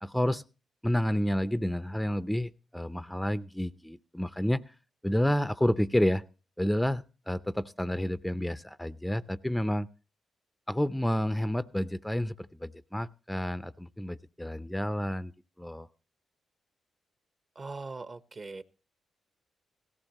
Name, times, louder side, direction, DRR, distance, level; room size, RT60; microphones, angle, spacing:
voice 1, 0.0-0.4 0.8-4.6 5.0-6.2 6.6-9.9 10.7-15.3 15.6-15.9, equal, 5° left, 0.6 m, -30 dB
voice 2, 17.5-18.6, right 3 dB, 40° right, 1.0 m, -40 dB
17.0 x 15.0 x 3.0 m
cardioid pair, 65°, 0 cm